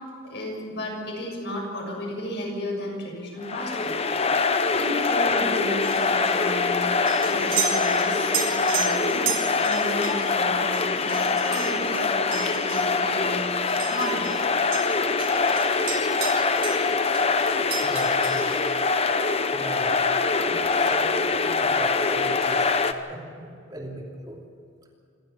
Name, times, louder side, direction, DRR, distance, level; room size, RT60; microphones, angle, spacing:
voice 1, 0.2-4.0 4.7-6.9 7.3-13.5 13.9-14.5, left 1 dB, 60° left, -1 dB, 6.9 m, -33 dB
sound 1, 3.4-22.9, left 4 dB, 30° left, 0.9 m, -24 dB
sound 2, 5.8-14.4 14.7-16.9 17.1-18.6, right 7 dB, 85° right, 4.7 m, -34 dB
voice 2, 17.8-18.6 19.5-20.0 20.4-22.8 23.1-24.4, right 1 dB, 20° right, -2 dB, 3.0 m, -38 dB
27.0 x 13.0 x 8.4 m, 2.3 s
head